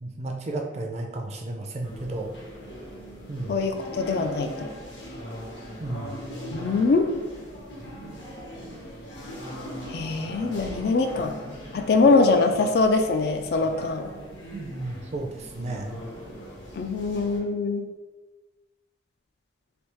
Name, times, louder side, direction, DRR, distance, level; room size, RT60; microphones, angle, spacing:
voice 1, 0.0-2.3 3.3-3.5 5.8-6.1 14.5-15.9, right 2 dB, 35° right, 2 dB, 0.4 m, -33 dB
sound 1, 1.8-17.4, equal, 75° left, 0.9 m, -40 dB
voice 2, 3.5-4.7 6.5-7.1 9.9-11.4 11.7-14.1 16.8-17.9, left 3 dB, 55° left, 6 dB, 0.3 m, -23 dB
3.4 x 2.7 x 3.0 m, 1.2 s
head